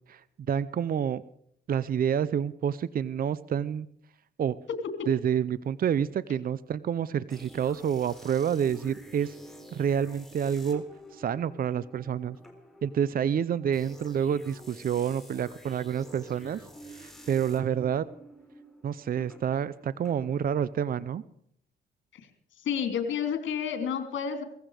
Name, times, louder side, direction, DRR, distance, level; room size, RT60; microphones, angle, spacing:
voice 1, 0.5-1.2 1.7-3.9 4.4-4.6 5.1-9.3 9.7-10.8 11.1-12.4 12.8-16.6 16.9-18.0 18.8-21.2, right 8 dB, 45° right, 18 dB, 0.7 m, -28 dB
voice 2, 4.7-5.1 22.1-22.3 22.6-24.4, left 7 dB, 70° left, 7 dB, 3.4 m, -30 dB
sound 1, 7.3-21.0, equal, ahead, 4.1 m, -50 dB
18.5 x 15.5 x 5.1 m, 0.66 s
cardioid pair, 90°, 20 cm